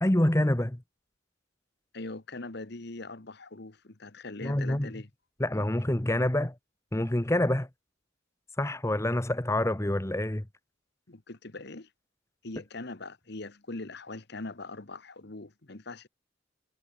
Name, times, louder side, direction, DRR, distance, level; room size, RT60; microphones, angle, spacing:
voice 1, 0.0-0.8 4.4-4.9 5.4-6.6 6.9-7.7 8.6-10.5, left 1 dB, 15° left, 1.0 m, -27 dB
voice 2, 1.9-5.1 11.1-11.9 12.4-16.1, left 2 dB, 55° left, 1.3 m, -41 dB
head